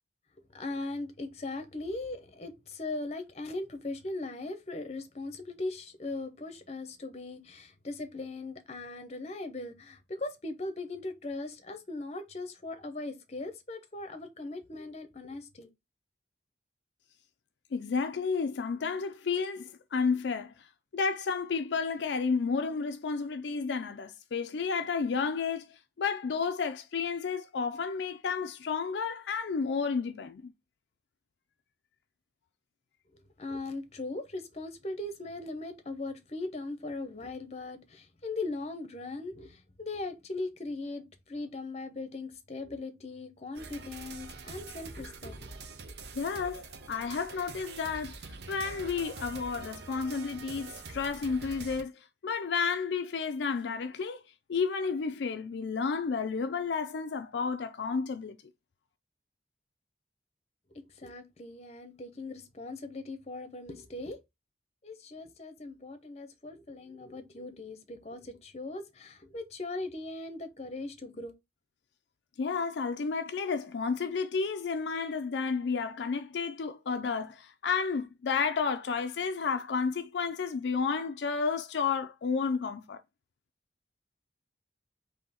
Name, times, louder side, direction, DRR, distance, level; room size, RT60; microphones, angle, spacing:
voice 1, 0.5-15.7 33.4-45.5 60.7-64.2 64.8-71.3, left 2 dB, 35° left, 0.7 m, -39 dB
voice 2, 17.7-20.5 20.9-25.7 26.0-30.5 46.1-54.2 54.5-58.4 72.4-83.0, left 5 dB, 75° left, 0.4 m, -31 dB
sound 1, 43.6-51.8, right 4 dB, 65° right, 0.7 m, -45 dB
3.8 x 2.8 x 4.1 m
head